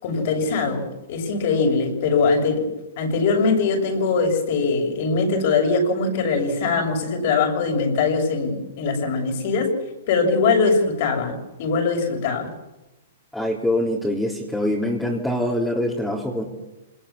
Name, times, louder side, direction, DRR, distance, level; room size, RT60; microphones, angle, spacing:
voice 1, 0.0-2.7 3.0-9.7 10.1-12.5, left 4 dB, 55° left, 4 dB, 7.2 m, -22 dB
voice 2, 13.3-16.4, left 1 dB, 5° left, -4 dB, 4.3 m, -24 dB
27.0 x 21.0 x 7.5 m, 1.0 s
hypercardioid pair, 120°, 0 cm